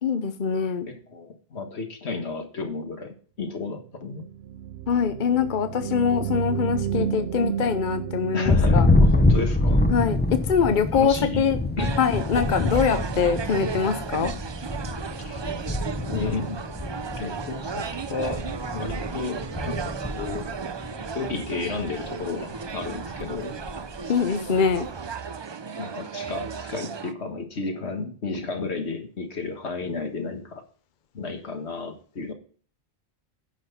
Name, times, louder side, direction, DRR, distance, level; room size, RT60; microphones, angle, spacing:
voice 1, 0.0-0.9 4.9-8.9 9.9-11.6 12.0-14.3 24.1-24.9, left 6 dB, 50° left, 10 dB, 0.9 m, -23 dB
voice 2, 0.9-4.2 8.3-9.8 10.6-11.5 11.8-11.9 15.2-15.4 16.0-16.6 17.2-20.5 21.1-23.5 25.8-30.6 31.1-32.3, left 3 dB, 80° left, 5 dB, 1.9 m, -32 dB
sound 1, 3.8-3.9 4.1-9.4, right 10 dB, 75° right, 0.9 m, -32 dB
Thunder, 8.4-21.3 21.7-22.2 22.6-24.0, left 2 dB, 10° left, 0.5 m, -25 dB
sound 2, 11.8-27.1, right 6 dB, 40° right, 0.4 m, -35 dB
10.0 x 6.2 x 5.7 m, 0.42 s
omnidirectional pair, 1.1 m